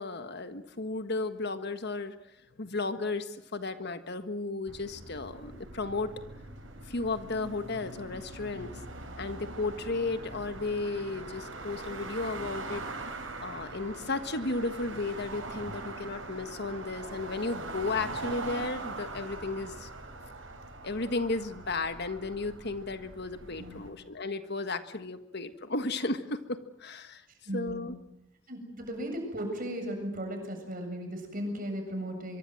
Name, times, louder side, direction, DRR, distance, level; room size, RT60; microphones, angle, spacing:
voice 1, 0.0-2.2 2.6-6.1 6.9-8.7 9.2-12.8 13.4-19.9 20.8-27.2 27.5-28.0, left 3 dB, 60° left, 10 dB, 1.6 m, -34 dB
sound 1, 4.7-23.9, right 2 dB, 80° right, 6.7 m, -42 dB
voice 2, 27.5-27.9 28.5-32.4, equal, 45° right, 4 dB, 7.6 m, -36 dB
24.5 x 23.5 x 7.8 m, 0.89 s
head